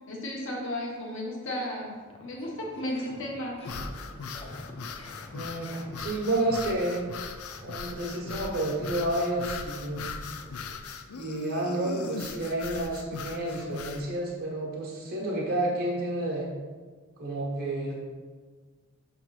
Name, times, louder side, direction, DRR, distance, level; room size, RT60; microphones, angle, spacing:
voice 1, 0.1-2.0 2.2-3.6, left 1 dB, 60° left, -2 dB, 1.3 m, -34 dB
sound 1, 1.7-11.2, left 1 dB, 30° left, 0.8 m, -49 dB
sound 2, 3.6-14.1, left 5 dB, 85° left, 0.5 m, -39 dB
voice 2, 5.3-7.0 7.6-10.1 11.1-16.5 17.2-17.9, right 1 dB, 45° right, -4 dB, 1.2 m, -30 dB
5.8 x 3.4 x 5.8 m, 1.5 s
head